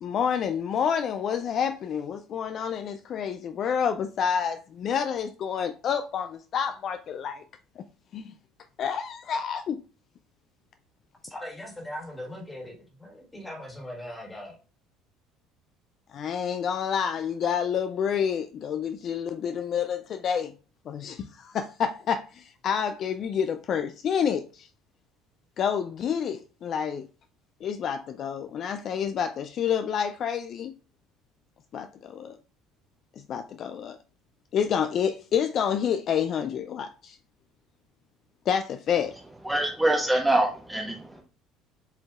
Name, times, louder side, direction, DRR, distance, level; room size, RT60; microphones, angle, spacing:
voice 1, 0.0-7.4 7.8-7.9 8.1-8.3 8.8-9.8 16.1-20.5 20.9-24.7 25.6-27.1 27.6-30.7 31.7-32.4 33.3-34.0 34.5-37.2 38.5-39.2, left 7 dB, 40° left, 0.3 m, -28 dB
voice 2, 11.2-14.6, left 1 dB, 10° left, 1.6 m, -40 dB
voice 3, 39.4-41.2, right 1 dB, 5° right, 0.6 m, -24 dB
7.5 x 2.7 x 2.3 m
cardioid pair, 140°, 0 cm